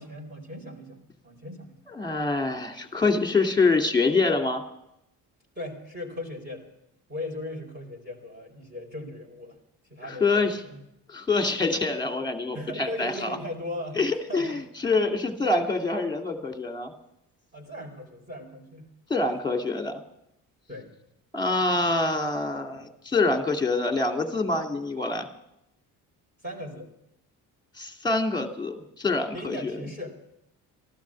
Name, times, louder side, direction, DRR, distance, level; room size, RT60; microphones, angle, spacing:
voice 1, 0.0-1.8 5.6-6.7 7.1-9.6 9.9-10.8 12.5-14.6 17.5-18.9 20.7-20.9 22.7-22.9 26.4-26.9 29.3-30.1, left 1 dB, 25° right, -2 dB, 4.2 m, -38 dB
voice 2, 1.9-4.6 10.2-10.6 11.1-13.3 14.0-16.9 19.1-20.0 21.3-25.3 27.8-29.8, left 3 dB, 10° left, 4 dB, 2.4 m, -25 dB
14.5 x 11.5 x 7.5 m, 0.82 s
supercardioid pair, 60°, 41 cm